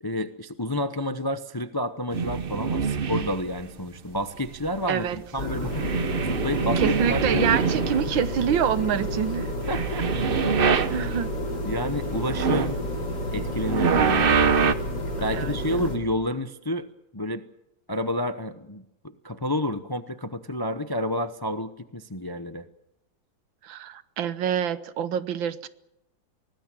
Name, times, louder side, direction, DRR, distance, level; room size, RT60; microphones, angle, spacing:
voice 1, 0.0-7.6 9.7-10.4 10.9-11.1 11.6-12.8 13.3-14.3 15.2-16.9 17.1-17.4 17.9-22.7, left 1 dB, 25° left, 0.4 m, -30 dB
sound 1, 2.1-3.6 4.2-5.2 5.5-8.4 8.6-11.4 11.8-14.7, right 6 dB, 45° right, 0.8 m, -25 dB
voice 2, 4.9-5.2 6.6-9.5 10.9-11.3 15.3-15.9 23.6-25.7, right 8 dB, 90° right, 1.8 m, -26 dB
sound 2, 5.4-16.0, left 1 dB, 60° left, 5.1 m, -30 dB
25.0 x 19.5 x 7.5 m
omnidirectional pair, 2.0 m